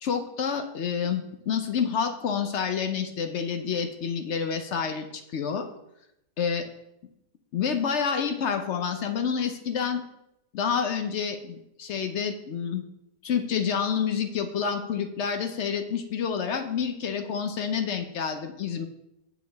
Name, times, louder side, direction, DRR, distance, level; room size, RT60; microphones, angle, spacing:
voice 1, 0.0-5.7 6.4-6.7 7.5-10.0 10.5-12.8 13.2-18.9, left 7 dB, 65° left, 7 dB, 0.7 m, -28 dB
8.3 x 7.0 x 3.4 m, 0.84 s
omnidirectional pair, 1.8 m